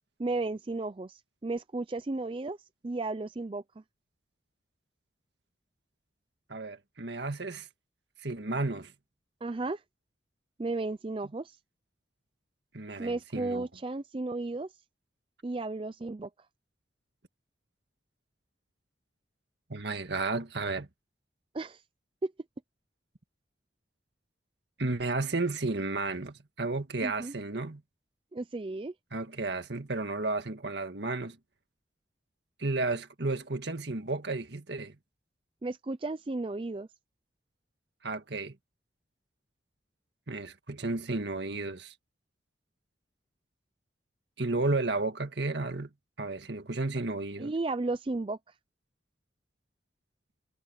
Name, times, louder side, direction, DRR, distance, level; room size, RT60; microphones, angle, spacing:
voice 1, 0.2-2.6 2.8-3.6 9.4-9.8 10.6-11.6 13.0-14.7 15.4-16.3 21.5-21.8 22.2-22.3 27.0-27.3 28.3-28.9 35.6-36.9 47.4-48.4, right 2 dB, 30° right, 0.4 m, -34 dB
voice 2, 6.5-7.7 8.2-8.9 12.7-13.7 19.7-20.9 24.8-27.8 29.1-31.4 32.6-34.9 38.0-38.6 40.3-41.9 44.4-45.9 46.2-47.5, right 3 dB, 65° right, 1.8 m, -32 dB
head